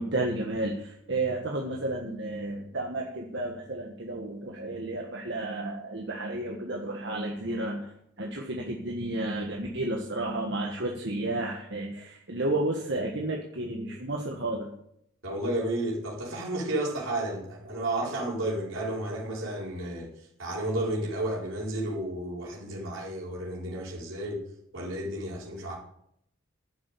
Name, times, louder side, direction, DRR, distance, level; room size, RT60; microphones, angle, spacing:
voice 1, 0.0-14.8, right 2 dB, 60° right, 1 dB, 1.5 m, -32 dB
voice 2, 15.2-24.4 24.7-25.7, right 1 dB, 75° right, -4 dB, 4.7 m, -32 dB
11.5 x 7.5 x 8.3 m, 0.74 s
head